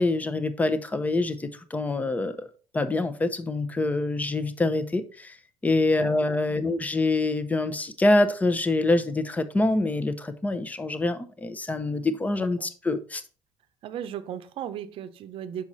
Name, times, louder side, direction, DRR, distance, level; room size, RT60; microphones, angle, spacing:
voice 1, 0.0-2.5 2.7-5.3 5.6-13.2, left 2 dB, 15° left, 0.8 m, -25 dB
voice 2, 13.8-15.7, right 9 dB, 60° right, 0.7 m, -36 dB
6.2 x 4.7 x 4.1 m
supercardioid pair, 95°, 10 cm